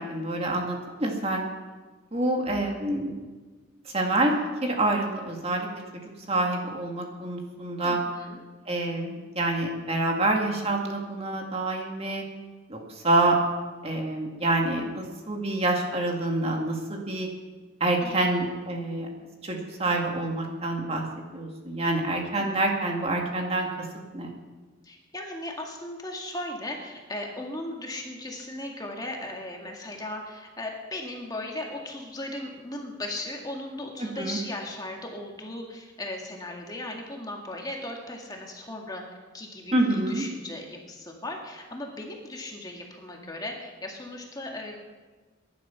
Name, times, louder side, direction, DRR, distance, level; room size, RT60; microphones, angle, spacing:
voice 1, 0.1-1.5 2.1-3.1 3.9-4.3 4.6-5.7 5.9-6.0 6.3-8.0 8.7-12.2 12.7-12.8 13.0-13.4 13.8-17.3 17.8-19.1 19.4-21.0 21.3-23.7 24.1-24.3 34.2-34.4 39.7-40.2, right 2 dB, 30° right, 1 dB, 2.2 m, -27 dB
voice 2, 7.8-8.4 18.0-18.4 22.3-22.5 24.8-39.0 39.3-44.8, left 1 dB, 20° left, 1 dB, 2.0 m, -37 dB
21.0 x 11.5 x 5.8 m, 1.3 s
head